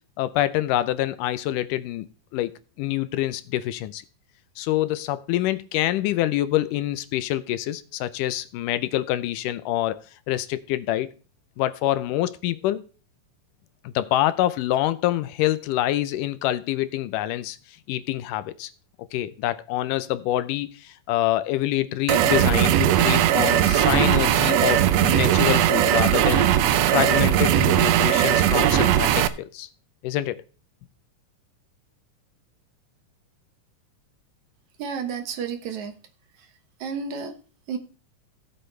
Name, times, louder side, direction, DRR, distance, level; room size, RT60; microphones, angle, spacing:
voice 1, 0.2-2.1 2.3-2.5 2.8-4.0 4.6-10.0 10.3-11.1 11.6-12.8 14.0-17.6 17.9-18.7 19.1-26.5 26.8-29.7 30.0-30.4, left 14 dB, 80° left, 2.2 m, -26 dB
sound 1, 22.1-29.3, right 11 dB, 85° right, 1.5 m, -19 dB
voice 2, 34.8-35.9 36.4-36.5 36.8-37.3 37.7-37.8, right 6 dB, 65° right, 2.4 m, -31 dB
17.0 x 7.8 x 3.2 m
omnidirectional pair, 3.8 m